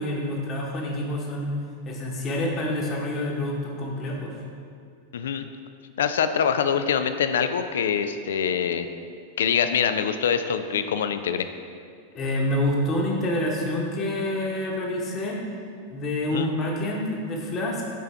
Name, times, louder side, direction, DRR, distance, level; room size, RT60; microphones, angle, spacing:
voice 1, 0.0-1.6 1.8-4.3 12.1-15.4 15.9-17.8, left 1 dB, 30° left, -1 dB, 1.1 m, -27 dB
voice 2, 5.1-5.5 6.0-8.9 9.4-11.5 16.3-16.5, left 7 dB, 60° left, 10 dB, 0.3 m, -24 dB
9.2 x 4.5 x 3.4 m, 2.3 s
figure-of-eight pair, 90°, 0 cm